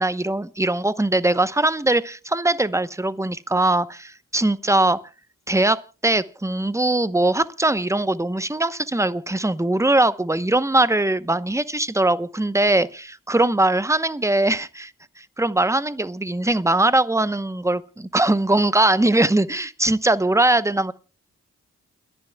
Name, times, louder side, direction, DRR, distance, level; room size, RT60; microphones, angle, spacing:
voice 1, 0.0-5.0 5.5-14.9 15.2-20.9, right 2 dB, 10° right, 14 dB, 0.9 m, -21 dB
29.5 x 11.0 x 2.3 m, 0.34 s
cardioid pair, 45°, 32 cm